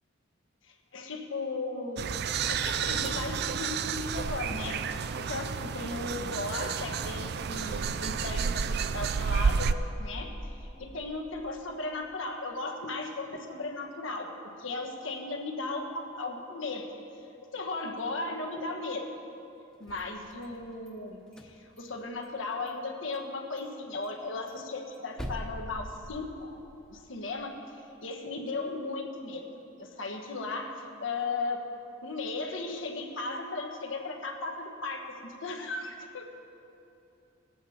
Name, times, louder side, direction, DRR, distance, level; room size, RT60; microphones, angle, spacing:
voice 1, 0.6-2.0 2.5-4.8 5.3-14.3 14.6-16.9 17.5-19.1 19.8-26.6 26.9-29.4 29.8-31.6 32.0-36.2, left 3 dB, 75° left, 3 dB, 1.3 m, -36 dB
sound 1, 2.0-9.7, right 6 dB, 55° right, 0.4 m, -31 dB
sound 2, 19.7-20.9 21.3-22.4 22.7-22.8 23.1-23.3 23.6-23.7 24.0-26.6, equal, 5° left, 1.0 m, -43 dB
20.5 x 8.4 x 4.3 m, 2.9 s
head